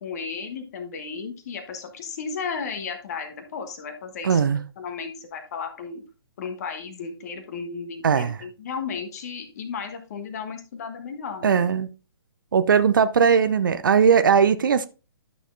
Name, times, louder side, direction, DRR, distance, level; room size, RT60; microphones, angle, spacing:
voice 1, 0.0-4.5 4.8-6.0 6.4-11.6, left 5 dB, 40° left, 1.3 m, -34 dB
voice 2, 4.2-4.6 8.0-8.4 11.4-11.9 12.5-14.9, right 6 dB, 50° right, 0.5 m, -19 dB
11.5 x 6.5 x 2.6 m
figure-of-eight pair, 130°, 13 cm